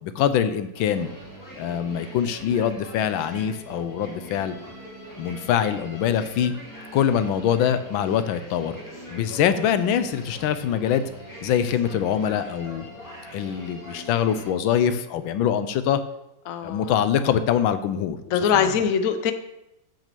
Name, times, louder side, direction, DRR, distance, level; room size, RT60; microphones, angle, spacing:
voice 1, 0.0-1.1 1.6-4.5 5.2-6.5 6.9-8.8 9.1-11.0 11.4-12.8 13.3-16.0 16.6-18.2 18.5-18.7, left 9 dB, 85° left, 11 dB, 1.4 m, -24 dB
sound 1, 0.7-14.5, equal, 10° left, 2.4 m, -42 dB
voice 2, 16.5-17.0 18.3-19.3, left 7 dB, 55° left, 9 dB, 1.0 m, -23 dB
8.0 x 6.1 x 6.7 m, 0.88 s
omnidirectional pair, 2.1 m